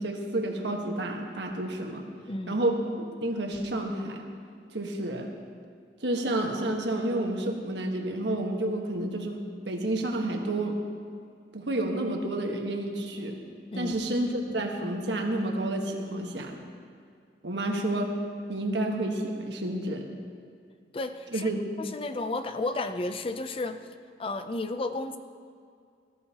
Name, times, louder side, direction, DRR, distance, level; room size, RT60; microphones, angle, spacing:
voice 1, 0.0-2.0 2.5-2.8 3.2-4.2 4.7-5.3 6.0-9.4 9.6-10.8 11.5-13.4 13.7-16.6 17.4-18.2 18.5-20.0 21.3-21.6, right 1 dB, 80° right, 2 dB, 1.4 m, -30 dB
voice 2, 2.3-2.6 13.7-13.9 20.9-21.5 21.8-23.9 24.2-25.2, left 2 dB, 30° left, 9 dB, 0.5 m, -32 dB
18.5 x 13.5 x 2.9 m, 2.2 s
head